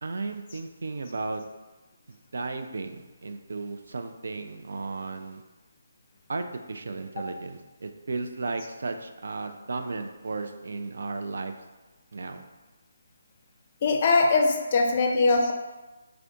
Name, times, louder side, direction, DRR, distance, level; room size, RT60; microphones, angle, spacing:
voice 1, 0.0-1.4 2.1-5.4 6.3-11.6 12.1-12.4, right 3 dB, 65° right, 7 dB, 0.3 m, -34 dB
voice 2, 13.8-15.5, left 3 dB, 40° left, 3 dB, 0.4 m, -22 dB
3.4 x 2.5 x 3.5 m, 1.1 s
figure-of-eight pair, 145°, 0 cm